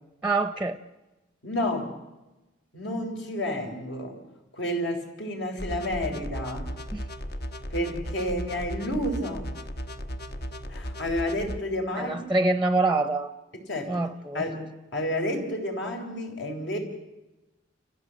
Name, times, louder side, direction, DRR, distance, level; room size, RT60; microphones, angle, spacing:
voice 1, 0.2-0.8 6.9-7.0 12.0-13.3 13.9-14.4, right 2 dB, 5° right, 11 dB, 0.7 m, -25 dB
voice 2, 1.4-1.9 2.7-4.2 4.5-6.7 7.7-9.5 10.7-12.3 13.5-14.0 14.3-14.6 14.9-16.8, left 1 dB, 70° left, 3 dB, 4.1 m, -30 dB
sound 1, 5.6-11.6, equal, 55° left, 1.1 m, -36 dB
28.5 x 15.0 x 7.8 m, 1.1 s
head